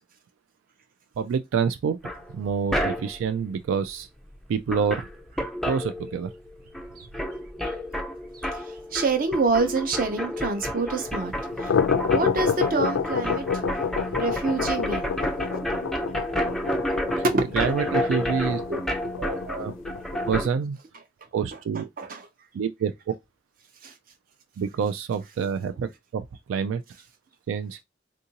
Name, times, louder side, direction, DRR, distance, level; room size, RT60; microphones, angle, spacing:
voice 1, 1.2-2.0 2.3-4.1 4.5-5.1 5.7-6.3 17.5-18.6 19.2-19.7 20.3-20.8 21.3-21.9 22.5-22.9 24.6-26.8 27.5-27.8, right 6 dB, 85° right, 0.3 m, -27 dB
sound 1, 2.0-3.3 4.3-4.4 4.7-6.5 6.7-20.5, equal, ahead, 0.3 m, -30 dB
voice 2, 8.5-11.3 11.6-11.7 12.1-13.5 14.2-15.1 17.5-17.9 18.7-18.8 22.0-22.3 23.8-23.9, right 3 dB, 45° right, 0.6 m, -27 dB
sound 2, 11.4-20.4, left 6 dB, 80° left, 0.3 m, -29 dB
3.6 x 2.5 x 2.8 m
head